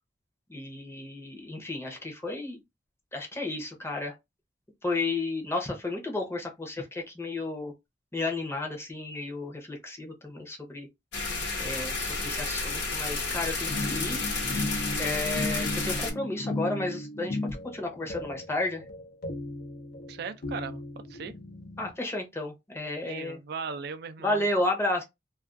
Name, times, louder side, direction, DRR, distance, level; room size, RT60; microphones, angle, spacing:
voice 1, 0.5-2.6 3.1-4.1 4.8-7.7 8.1-10.9 11.6-14.2 15.0-17.4 17.7-18.8 21.8-23.4 24.2-25.0, left 2 dB, 15° left, 0.7 m, -32 dB
sound 1, 11.1-16.1, left 3 dB, 90° left, 0.9 m, -31 dB
sound 2, 13.7-21.9, left 1 dB, 55° left, 0.5 m, -36 dB
voice 2, 20.1-20.8 21.1-21.3 23.0-24.5, right 5 dB, 60° right, 0.4 m, -37 dB
2.4 x 2.3 x 2.4 m
head